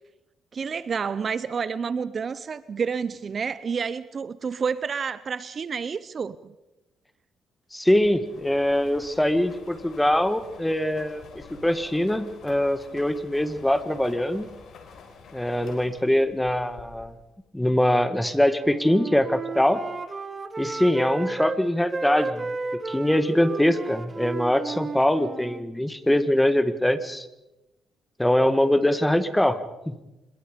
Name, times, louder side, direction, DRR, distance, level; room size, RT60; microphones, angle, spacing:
voice 1, 0.5-6.5, right 6 dB, 45° right, 16 dB, 0.7 m, -29 dB
voice 2, 7.7-11.2 11.6-14.5 15.3-17.1 17.5-19.8 20.6-22.5 22.7-27.3 28.2-29.6 29.9-30.0, left 1 dB, 5° left, 12 dB, 1.6 m, -23 dB
sound 1, 8.0-17.3, left 5 dB, 65° left, 4.4 m, -48 dB
Wind instrument woodwind instrument, 18.5-21.6 21.9-25.7, right 3 dB, 30° right, 1.6 m, -33 dB
25.5 x 21.5 x 5.2 m, 0.97 s
cardioid pair, 90°, 0 cm